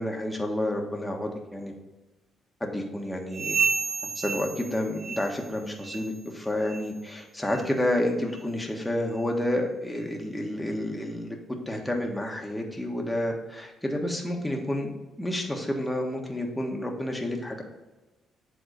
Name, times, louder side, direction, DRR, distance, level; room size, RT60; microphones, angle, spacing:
voice 1, 0.0-1.7 2.6-3.6 4.0-11.4 11.7-14.9 15.2-17.6, left 1 dB, 5° left, 1 dB, 1.3 m, -30 dB
sound 1, 3.3-5.5 5.8-6.2 6.6-6.9 7.5-7.7 8.3-8.4 9.2-9.3, right 5 dB, 45° right, 0.8 m, -31 dB
7.8 x 3.6 x 5.1 m, 1.1 s
cardioid pair, 90°, 0 cm